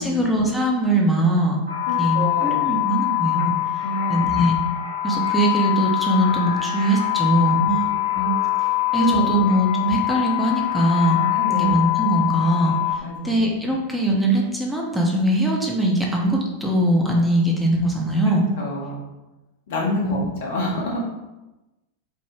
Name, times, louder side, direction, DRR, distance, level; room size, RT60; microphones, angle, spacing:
voice 1, 0.0-1.6 2.0-3.5 4.1-4.6 5.0-8.3 8.9-11.2 11.5-12.8 13.2-18.5 20.0-20.3, right 1 dB, ahead, -3 dB, 0.5 m, -21 dB
sound 1, 1.7-12.9, left 15 dB, 85° right, 1.1 m, -23 dB
voice 2, 1.9-2.7 3.8-4.4 9.0-9.4 11.3-11.7 13.0-13.4 18.6-19.0 19.7-21.0, left 1 dB, 55° left, -3 dB, 0.9 m, -27 dB
3.3 x 2.0 x 2.9 m, 1.0 s
figure-of-eight pair, 90°, 0 cm